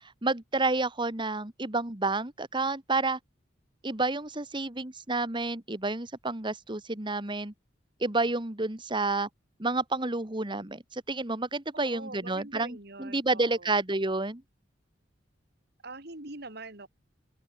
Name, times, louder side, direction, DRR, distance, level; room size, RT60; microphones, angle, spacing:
voice 1, 0.2-3.2 3.8-7.5 8.0-9.3 9.6-14.4, right 3 dB, 25° right, 1.9 m, -30 dB
voice 2, 11.7-13.8 15.8-16.9, right 2 dB, 60° right, 4.0 m, -43 dB
open air
head